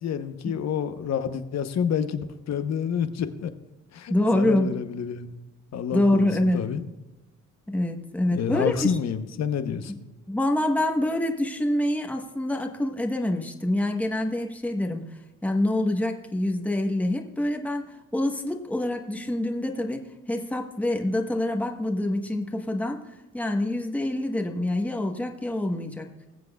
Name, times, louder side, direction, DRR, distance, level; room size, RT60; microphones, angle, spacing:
voice 1, 0.0-3.5 3.9-5.4 5.7-6.2 6.5-6.8 8.3-10.1, left 7 dB, 60° left, 10 dB, 1.0 m, -28 dB
voice 2, 4.1-4.7 5.9-6.6 7.7-8.9 10.3-15.0 15.4-23.0 23.3-26.1, left 1 dB, 5° left, 3 dB, 1.2 m, -26 dB
20.0 x 7.6 x 2.3 m, 1.1 s
cardioid pair, 90°, 30 cm